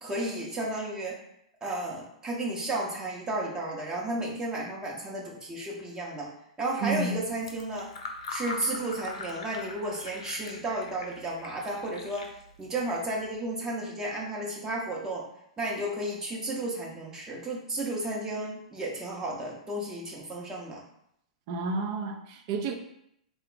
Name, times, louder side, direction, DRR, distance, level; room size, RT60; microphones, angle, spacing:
voice 1, 0.0-1.2 1.6-6.3 6.6-7.9 8.3-12.3 12.6-15.2 15.6-20.8, right 1 dB, 15° right, -3 dB, 0.9 m, -33 dB
voice 2, 6.8-7.2 21.5-22.7, right 3 dB, 50° right, 4 dB, 0.6 m, -30 dB
Fill (with liquid), 7.2-13.4, left 3 dB, 65° left, 0.7 m, -42 dB
3.7 x 2.3 x 3.7 m, 0.74 s
hypercardioid pair, 105°, 4 cm